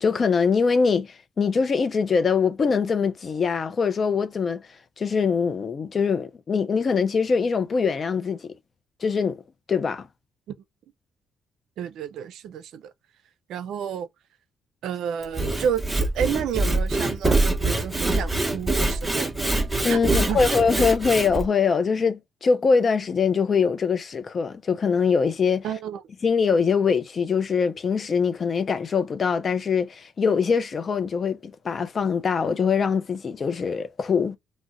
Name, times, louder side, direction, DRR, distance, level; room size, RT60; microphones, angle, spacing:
voice 1, 0.0-4.6 5.0-8.5 9.0-9.4 9.7-10.1 19.8-25.7 26.2-34.4, left 5 dB, 45° left, 0.4 m, -23 dB
voice 2, 11.8-12.9 13.5-14.1 14.8-19.3 19.9-20.4 25.6-26.0, right 8 dB, 80° right, 0.4 m, -30 dB
Sawing / Wood, 15.2-21.4, right 2 dB, 10° right, 0.8 m, -24 dB
2.4 x 2.1 x 3.9 m
cardioid pair, 90°, 0 cm